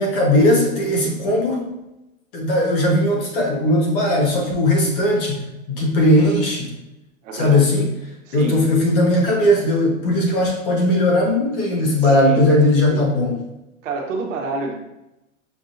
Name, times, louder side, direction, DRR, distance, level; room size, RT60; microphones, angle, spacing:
voice 1, 0.0-1.6 2.3-6.7 7.3-7.9 8.3-13.4, left 1 dB, 40° left, -1 dB, 1.1 m, -18 dB
voice 2, 7.2-7.6 8.3-8.6 12.0-12.4 12.9-13.0 13.8-14.8, right 3 dB, 65° right, 1 dB, 1.0 m, -27 dB
5.9 x 2.8 x 2.5 m, 0.92 s
hypercardioid pair, 155°, 40 cm